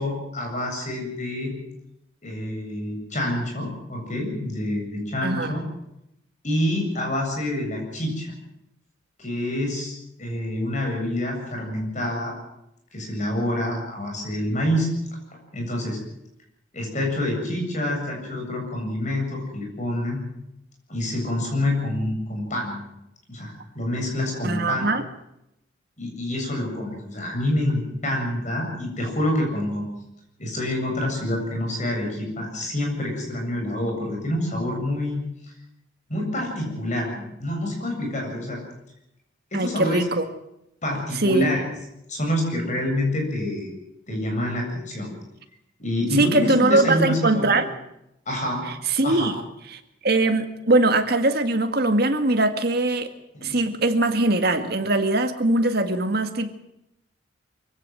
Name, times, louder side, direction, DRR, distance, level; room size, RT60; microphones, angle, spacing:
voice 1, 0.0-1.6 2.2-5.6 6.4-8.3 9.2-12.4 12.9-14.9 15.5-16.0 16.7-20.2 20.9-22.8 23.3-24.8 26.0-29.9 30.4-35.2 36.1-38.6 39.5-40.0 40.8-41.6 42.1-43.7 44.1-45.1 45.8-47.5 48.3-48.6 49.0-49.3 53.3-53.6, left 1 dB, 40° left, 1 dB, 7.7 m, -27 dB
voice 2, 5.2-5.5 24.4-25.0 39.5-40.3 41.2-41.5 46.2-47.7 48.9-49.4 49.7-53.1 53.4-56.5, right 2 dB, 55° right, 7 dB, 1.9 m, -21 dB
24.0 x 16.0 x 7.9 m, 0.84 s
head